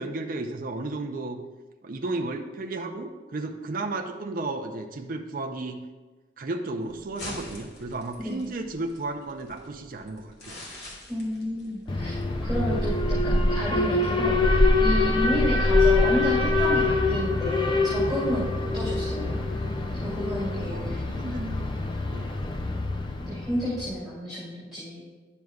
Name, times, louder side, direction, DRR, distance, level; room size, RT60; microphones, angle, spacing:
voice 1, 0.0-1.4 1.8-5.8 6.4-10.7 20.7-21.8 22.1-22.3, right 2 dB, 50° right, 3 dB, 0.5 m, -33 dB
sound 1, 6.8-12.2, left 1 dB, 60° left, 1.7 m, -44 dB
voice 2, 11.1-12.2 12.4-19.4 20.0-21.0 23.2-25.0, equal, ahead, -11 dB, 2.5 m, -31 dB
Alarm, 11.9-23.9, left 2 dB, 25° left, 0.4 m, -24 dB
10.5 x 6.3 x 2.4 m, 1.3 s
head